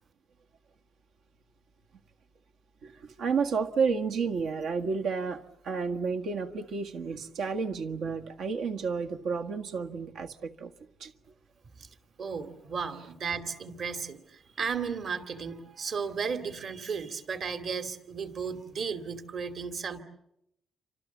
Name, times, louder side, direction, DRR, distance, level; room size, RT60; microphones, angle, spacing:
voice 1, 2.8-10.7 11.0-11.1, right 5 dB, 85° right, 4 dB, 1.7 m, -31 dB
voice 2, 12.2-20.0, right 6 dB, 55° right, 9 dB, 2.6 m, -34 dB
29.5 x 26.0 x 7.4 m, 0.82 s
cardioid pair, 115°, 0 cm